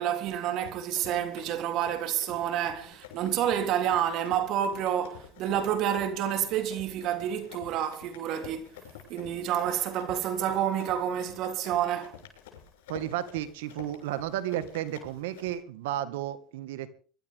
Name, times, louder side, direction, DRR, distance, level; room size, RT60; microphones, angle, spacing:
voice 1, 0.0-8.7 9.1-12.1, right 10 dB, 60° right, 3.3 m, -29 dB
Run, 0.6-15.6, left 9 dB, 90° left, 6.4 m, -50 dB
voice 2, 12.9-16.9, right 12 dB, 85° right, 1.9 m, -33 dB
23.5 x 12.5 x 3.7 m
supercardioid pair, 105°, 0 cm